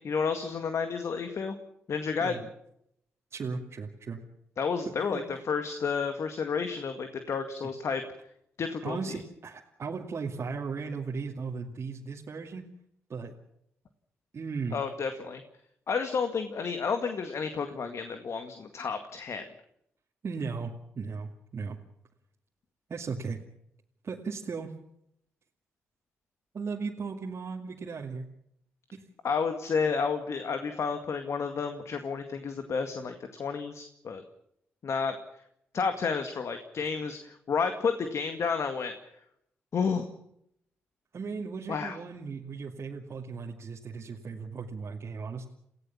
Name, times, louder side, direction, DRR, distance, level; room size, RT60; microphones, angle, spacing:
voice 1, 0.0-1.6 1.9-2.4 4.6-8.0 8.6-9.0 14.7-15.4 15.9-19.4 29.2-34.2 34.8-35.2 35.7-38.9 39.7-40.1 41.7-42.0, left 5 dB, 60° left, 7 dB, 2.0 m, -31 dB
voice 2, 3.3-4.2 5.1-5.2 8.8-12.6 13.1-13.3 14.3-14.8 20.2-21.8 22.9-23.4 24.0-24.7 26.5-28.3 28.9-29.0 41.1-45.5, right 5 dB, 50° right, -1 dB, 2.4 m, -36 dB
28.5 x 16.0 x 7.3 m, 0.76 s
hypercardioid pair, 40°, 6 cm